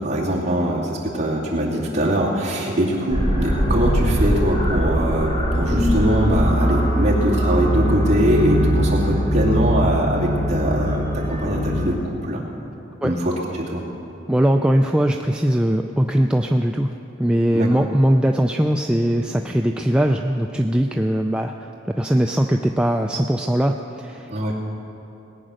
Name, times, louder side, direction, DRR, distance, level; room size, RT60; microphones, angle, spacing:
voice 1, 0.0-12.4 13.0-13.3 13.6-13.8 17.5-17.7 24.3-24.5, right 1 dB, 35° right, -5 dB, 2.6 m, -22 dB
sound 1, 3.1-11.9, equal, 20° left, 2.1 m, -21 dB
voice 2, 14.3-24.5, equal, 5° right, 3 dB, 0.3 m, -20 dB
20.0 x 9.0 x 6.4 m, 2.9 s
head